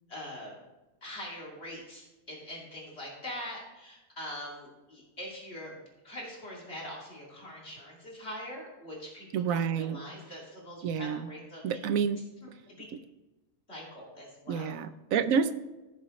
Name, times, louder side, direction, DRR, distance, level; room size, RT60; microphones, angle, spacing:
voice 1, 0.1-0.5 1.0-5.8 6.0-11.6 12.4-12.8 13.7-14.8, equal, 50° left, -4 dB, 2.7 m, -43 dB
voice 2, 9.3-10.0 10.8-11.3 11.6-12.2 14.5-15.5, right 6 dB, 75° right, 12 dB, 1.1 m, -28 dB
15.5 x 7.2 x 3.1 m, 1.1 s
omnidirectional pair, 1.4 m